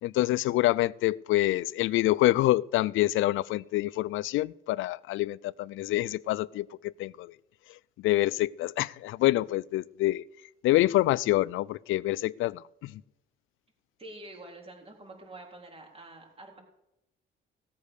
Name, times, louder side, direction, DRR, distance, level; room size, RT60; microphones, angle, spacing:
voice 1, 0.0-7.3 8.0-10.2 10.6-13.0, left 16 dB, 85° left, 0.4 m, -26 dB
voice 2, 14.0-16.6, right 2 dB, 30° right, 3.9 m, -47 dB
17.5 x 8.3 x 6.5 m
cardioid pair, 90°, 20 cm